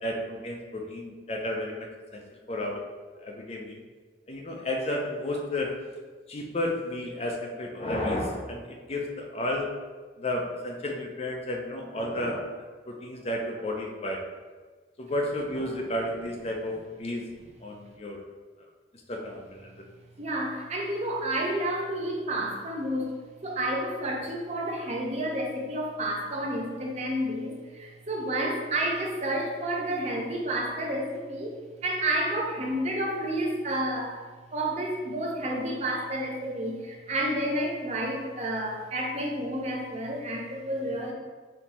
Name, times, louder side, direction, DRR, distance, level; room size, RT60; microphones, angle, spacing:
voice 1, 0.0-2.8 3.2-3.8 4.3-5.7 6.3-9.7 10.2-14.2 15.0-17.3 17.6-18.2 19.1-19.7, left 1 dB, 35° left, 1 dB, 0.5 m, -32 dB
voice 2, 20.2-23.2 23.4-34.2 34.5-41.1, right 1 dB, 35° right, 0 dB, 0.6 m, -30 dB
4.3 x 2.8 x 4.1 m, 1.4 s
head